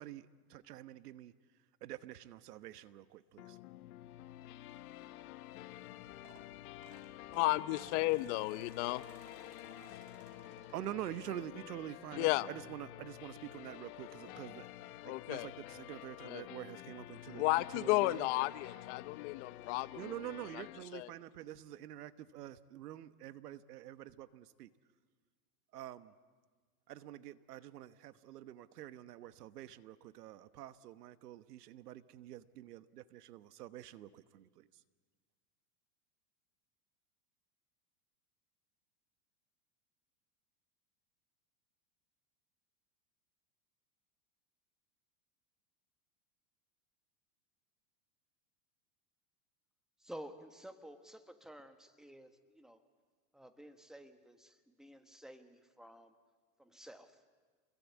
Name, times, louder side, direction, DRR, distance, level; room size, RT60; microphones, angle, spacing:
voice 1, 0.0-1.3 1.8-3.6 10.7-17.4 17.7-18.3 19.6-24.7 25.7-26.1 26.9-34.7, right 12 dB, 85° right, 14 dB, 1.2 m, -47 dB
sound 1, 3.4-20.8, left 15 dB, 70° left, 1.1 m, -50 dB
sound 2, 5.9-11.5 12.0-12.3 13.5-13.6 13.8-13.9 14.3-14.4, right 6 dB, 40° right, 4.1 m, -62 dB
voice 2, 7.3-9.0 12.2-12.5 15.0-15.5 16.2-16.4 17.3-20.0 20.5-20.6 20.9-21.1, left 20 dB, 50° left, 16 dB, 0.8 m, -33 dB
voice 3, 50.0-52.8 53.3-56.1 56.6-57.2, equal, ahead, 8 dB, 1.3 m, -52 dB
28.5 x 22.0 x 8.4 m, 1.5 s
supercardioid pair, 135°, 46 cm